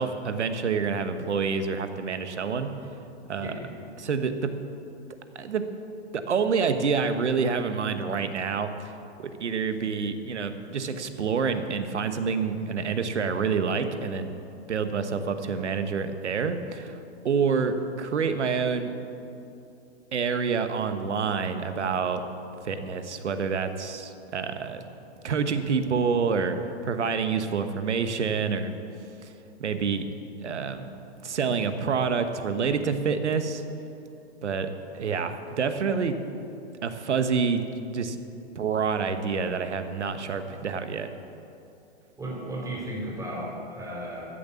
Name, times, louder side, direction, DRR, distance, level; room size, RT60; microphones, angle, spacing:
voice 1, 0.0-2.7 3.3-3.5 4.0-4.5 5.3-5.7 6.1-8.9 9.2-14.3 14.7-17.0 17.2-18.9 20.1-22.2 22.6-24.8 25.2-26.6 26.8-28.7 29.6-30.0 30.4-30.9 31.2-33.6 34.4-36.2 36.8-37.6 37.9-38.2 38.5-41.1, right 5 dB, 80° right, 9 dB, 1.2 m, -27 dB
voice 2, 3.4-3.7 42.2-44.3, right 1 dB, 10° right, -3 dB, 3.7 m, -35 dB
14.5 x 7.0 x 8.3 m, 2.8 s
hypercardioid pair, 125°, 34 cm